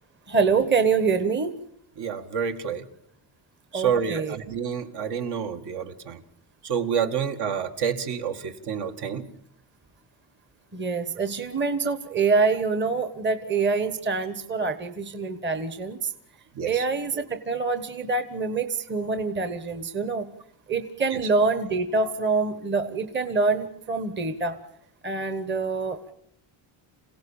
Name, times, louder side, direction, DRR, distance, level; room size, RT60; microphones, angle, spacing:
voice 1, 0.3-1.6 3.7-4.3 10.7-16.1 16.6-20.3 20.7-24.6 25.0-26.1, right 4 dB, 25° right, 9 dB, 1.3 m, -25 dB
voice 2, 2.0-2.9 3.7-6.2 6.6-9.3 16.5-16.9 21.1-21.3, right 7 dB, 60° right, 6 dB, 2.1 m, -28 dB
27.5 x 17.0 x 7.2 m, 0.70 s
cardioid pair, 140°, 45 cm